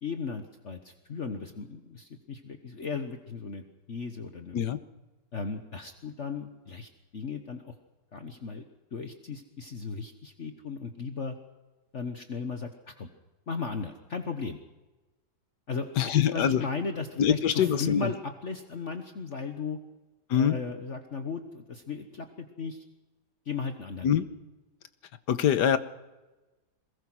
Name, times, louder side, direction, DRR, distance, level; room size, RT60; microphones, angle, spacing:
voice 1, 0.0-4.6 5.3-7.7 8.1-8.6 8.9-11.3 11.9-13.1 13.5-14.6 15.7-15.9 16.1-19.8 20.3-22.8 23.4-24.1, left 4 dB, 45° left, 6 dB, 1.5 m, -36 dB
voice 2, 16.0-16.6 17.2-18.1 20.3-20.6 24.0-24.2 25.3-25.8, left 9 dB, 80° left, 12 dB, 1.6 m, -24 dB
22.5 x 20.5 x 6.2 m, 1.1 s
omnidirectional pair, 1.8 m